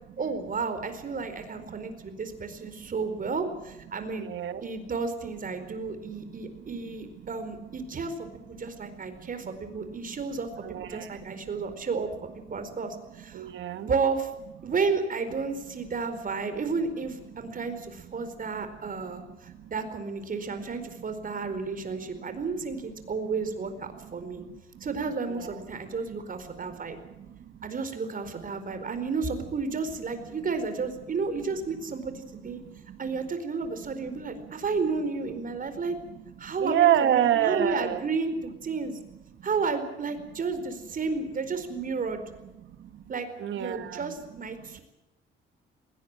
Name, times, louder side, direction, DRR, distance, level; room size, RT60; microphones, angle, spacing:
voice 1, 0.2-4.3 4.6-10.5 10.8-12.1 12.5-14.3 14.6-24.4 24.8-27.0 27.6-32.6 33.0-36.0 36.4-39.0 39.4-42.2 43.1-43.3 43.6-44.8, right 4 dB, 45° right, 9 dB, 4.5 m, -32 dB
voice 2, 4.2-4.6 6.8-7.0 7.2-7.3 8.8-9.3 9.7-10.1 10.6-11.4 13.3-13.9 18.2-18.3 19.1-19.7 22.2-22.3 24.4-24.6 25.3-25.5 27.0-27.5 32.7-33.0 36.5-38.0 42.6-43.0 43.4-44.1 44.6-44.8, right 11 dB, 70° right, 10 dB, 1.9 m, -29 dB
20.5 x 18.5 x 8.9 m, 0.97 s
cardioid pair, 90°, 20 cm